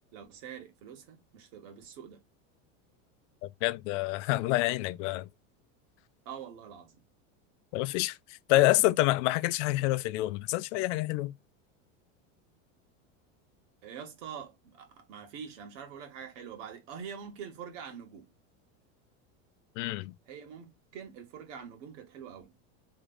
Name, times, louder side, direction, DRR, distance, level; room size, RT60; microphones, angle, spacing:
voice 1, 0.1-2.2 6.3-7.0 8.5-8.7 13.8-18.3 20.3-22.5, right 7 dB, 65° right, 2.0 m, -45 dB
voice 2, 3.4-5.3 7.7-8.2 8.5-11.3 19.8-20.1, left 18 dB, 65° left, 0.5 m, -27 dB
3.7 x 3.3 x 2.4 m
supercardioid pair, 130°, 39 cm